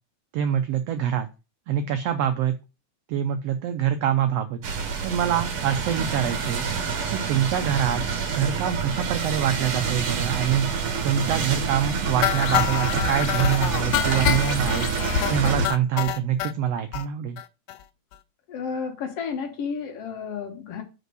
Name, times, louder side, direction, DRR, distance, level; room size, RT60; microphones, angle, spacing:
voice 1, 0.3-1.3 1.7-2.5 3.1-4.6 5.0-6.7 7.1-8.0 8.3-14.9 15.3-17.4, right 9 dB, 85° right, 1.4 m, -25 dB
sound 1, 4.6-15.7, right 6 dB, 55° right, 1.9 m, -27 dB
sound 2, 12.2-16.5 16.9-17.1 17.4-17.5 17.7-17.8 18.1-18.2, left 11 dB, 85° left, 2.1 m, -26 dB
voice 2, 18.5-20.8, left 6 dB, 55° left, 2.1 m, -32 dB
5.4 x 5.2 x 6.1 m
omnidirectional pair, 3.6 m